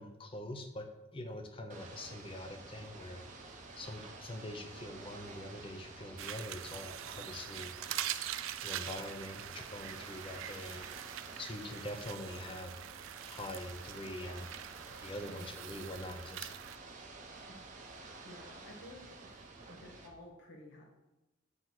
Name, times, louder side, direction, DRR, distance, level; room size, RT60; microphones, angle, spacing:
voice 1, 0.0-3.2 3.5-7.7 8.6-10.9 11.4-12.8 13.3-14.5 15.0-16.6, left 1 dB, 25° left, 5 dB, 0.7 m, -44 dB
Ocean / Boat Water vehicle, 1.7-20.1, right 3 dB, 40° right, 0.9 m, -51 dB
sound 1, 6.2-16.8, right 11 dB, 80° right, 0.4 m, -44 dB
voice 2, 15.2-15.5 17.5-17.6 17.9-19.4 19.7-20.9, left 1 dB, 60° left, -1 dB, 1.1 m, -54 dB
7.8 x 3.0 x 5.9 m, 1.0 s
head